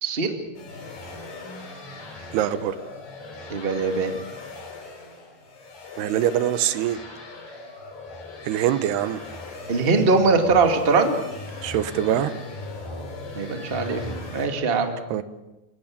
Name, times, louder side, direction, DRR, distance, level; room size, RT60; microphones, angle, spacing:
voice 1, 0.0-0.3 3.5-4.1 9.7-11.2 13.3-15.0, right 4 dB, 20° right, 5 dB, 1.5 m, -21 dB
sound 1, 0.5-14.5, left 2 dB, 80° left, 6.4 m, -39 dB
voice 2, 2.3-2.8 6.0-7.0 8.4-9.2 11.6-12.3 15.1-15.2, right 11 dB, 90° right, 13 dB, 3.1 m, -23 dB
28.0 x 17.0 x 8.7 m, 1.0 s
omnidirectional pair, 4.5 m